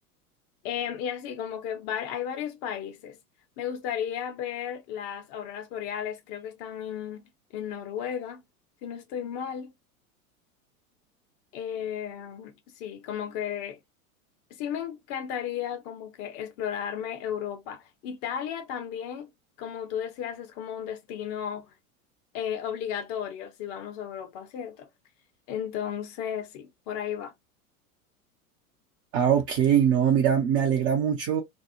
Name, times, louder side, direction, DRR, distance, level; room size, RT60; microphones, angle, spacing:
voice 1, 0.6-3.2 3.6-8.4 8.8-9.7 11.5-13.8 14.5-19.3 19.6-21.7 22.3-24.9 25.5-27.3, left 9 dB, 35° left, 0.7 m, -34 dB
voice 2, 29.1-31.4, right 8 dB, 25° right, 0.5 m, -22 dB
2.9 x 2.0 x 2.4 m
figure-of-eight pair, 85°, 45 cm